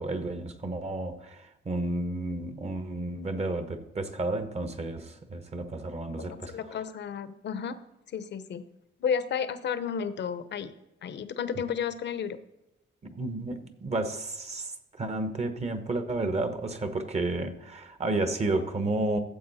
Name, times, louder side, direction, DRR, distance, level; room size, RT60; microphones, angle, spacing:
voice 1, 0.0-6.6 13.0-19.2, right 2 dB, 30° right, 8 dB, 1.1 m, -31 dB
voice 2, 6.2-7.8 8.1-8.6 9.0-10.7 11.0-12.4, left 7 dB, 60° left, 12 dB, 0.8 m, -32 dB
13.5 x 7.5 x 4.1 m, 0.89 s
cardioid pair, 115°, 20 cm